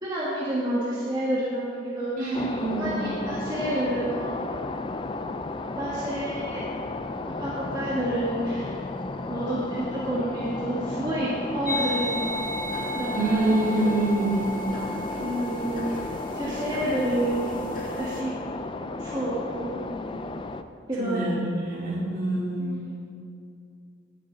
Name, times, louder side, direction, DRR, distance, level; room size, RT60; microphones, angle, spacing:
voice 1, 0.0-2.4 2.7-4.3 5.8-6.6 7.3-8.7 9.3-12.1 12.9-13.5 15.2-15.8 16.3-17.5 18.0-18.3 19.0-19.9 20.9-21.3 22.6-22.9, right 1 dB, 20° right, -8 dB, 1.7 m, -29 dB
voice 2, 2.2-3.0 13.1-14.4 21.0-22.7, right 2 dB, 45° right, -6 dB, 3.2 m, -26 dB
sound 1, 2.3-20.6, left 2 dB, 25° left, 0.4 m, -33 dB
sound 2, 11.6-18.2, equal, 45° left, 1.9 m, -34 dB
18.0 x 7.8 x 3.9 m, 2.5 s
head